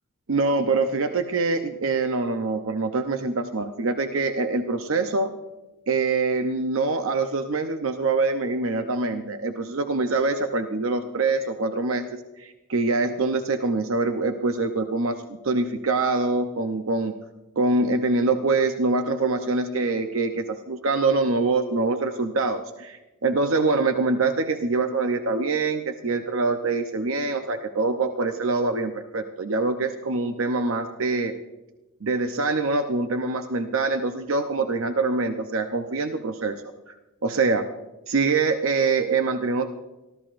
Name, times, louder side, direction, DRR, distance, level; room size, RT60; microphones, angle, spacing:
voice 1, 0.3-5.3 5.9-17.1 17.6-31.3 32.0-36.6 36.9-37.0 37.2-37.6 38.1-39.7, right 3 dB, 65° right, 6 dB, 0.8 m, -24 dB
27.0 x 13.5 x 2.6 m, 1.0 s
head